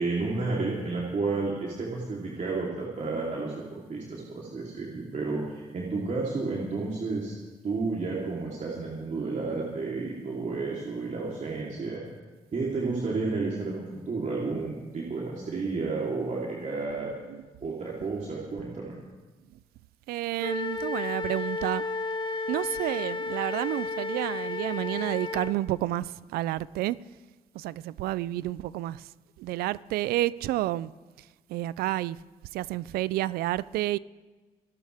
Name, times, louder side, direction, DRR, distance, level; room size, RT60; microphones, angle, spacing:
voice 1, 0.0-7.3 7.6-12.0 12.5-17.1 17.6-19.0, right 3 dB, 50° right, 3.5 m, -31 dB
voice 2, 20.1-21.8 22.5-27.0 27.5-29.0 29.4-30.9 31.5-32.2 32.5-34.0, right 15 dB, 85° right, 0.5 m, -30 dB
Wind instrument woodwind instrument, 20.4-25.6, left 3 dB, 30° left, 1.8 m, -32 dB
27.5 x 12.5 x 3.5 m
supercardioid pair, 50°, 15 cm